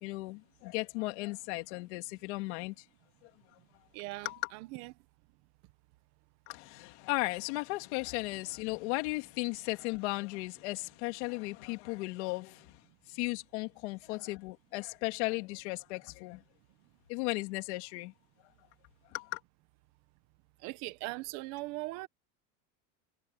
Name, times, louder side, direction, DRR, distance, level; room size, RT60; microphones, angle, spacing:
voice 1, 0.0-2.7 4.2-4.4 6.5-12.7 13.1-16.4 17.1-18.1 19.1-19.4, left 23 dB, 60° left, 2.7 m, -36 dB
voice 2, 3.9-4.9 20.6-22.1, right 21 dB, 45° right, 1.2 m, -40 dB
supercardioid pair, 170°, 38 cm